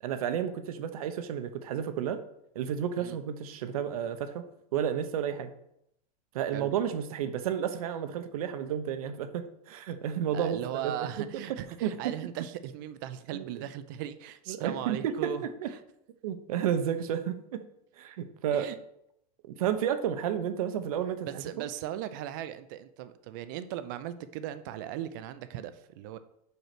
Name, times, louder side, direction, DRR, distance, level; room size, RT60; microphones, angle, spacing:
voice 1, 0.0-2.2 2.5-4.5 4.7-5.5 6.3-11.4 11.8-12.1 13.3-13.5 14.5-15.7 16.2-17.6 18.0-18.7 19.5-21.4, right 9 dB, 65° right, 10 dB, 0.8 m, -31 dB
voice 2, 10.3-15.5 15.7-15.8 18.5-18.8 21.2-26.2, right 11 dB, 30° right, 12 dB, 0.4 m, -38 dB
5.5 x 4.4 x 5.9 m, 0.78 s
supercardioid pair, 175°, 20 cm